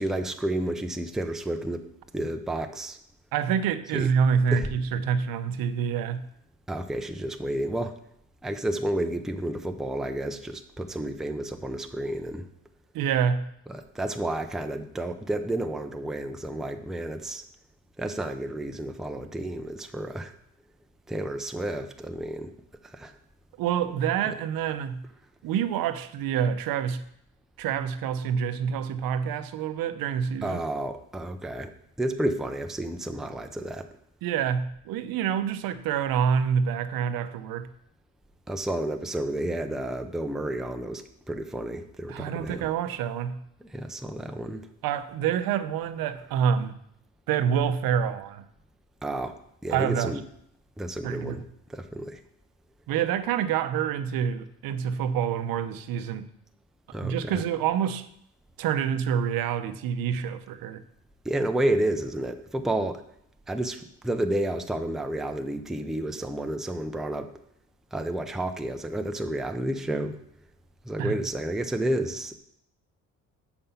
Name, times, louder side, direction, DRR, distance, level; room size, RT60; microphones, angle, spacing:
voice 1, 0.0-1.9 2.1-3.0 3.9-4.1 4.5-4.7 6.7-8.0 8.4-12.5 13.7-17.4 18.0-20.3 21.1-22.5 22.8-23.1 24.2-24.3 30.4-31.7 32.0-33.9 38.5-42.7 43.6-44.7 49.0-49.4 49.6-50.2 50.8-51.4 51.7-52.2 56.9-57.4 61.2-63.0 63.5-67.3 67.9-70.2 70.8-72.4, right 1 dB, ahead, 0.5 m, -31 dB
voice 2, 3.3-6.3 12.9-13.5 23.6-25.0 25.4-27.0 27.6-30.6 34.2-37.7 42.1-43.4 44.8-46.8 47.3-48.4 49.7-50.1 51.0-51.4 52.9-56.3 57.0-58.0 58.6-60.8 71.0-71.2, right 7 dB, 75° right, 0.7 m, -27 dB
6.9 x 5.5 x 5.6 m
cardioid pair, 115°, 36 cm